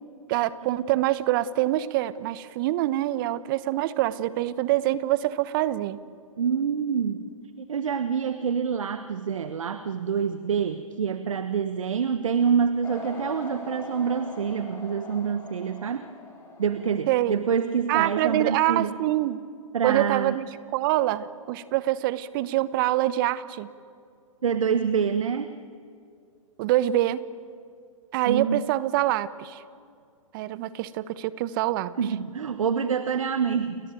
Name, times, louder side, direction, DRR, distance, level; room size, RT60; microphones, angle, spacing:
voice 1, 0.3-6.0 17.1-17.4 17.9-19.4 19.8-20.5 20.7-23.7 26.6-27.2 28.1-29.6 30.3-31.9, right 15 dB, 40° right, 16 dB, 1.1 m, -25 dB
voice 2, 6.4-7.2 7.6-16.0 16.6-18.9 19.7-20.4 24.4-25.5 28.3-28.6 32.0-33.8, right 6 dB, 70° right, 11 dB, 1.3 m, -26 dB
sound 1, 12.8-17.5, left 3 dB, 15° left, 6.1 m, -42 dB
30.0 x 20.5 x 9.1 m, 2.3 s
figure-of-eight pair, 120°, 18 cm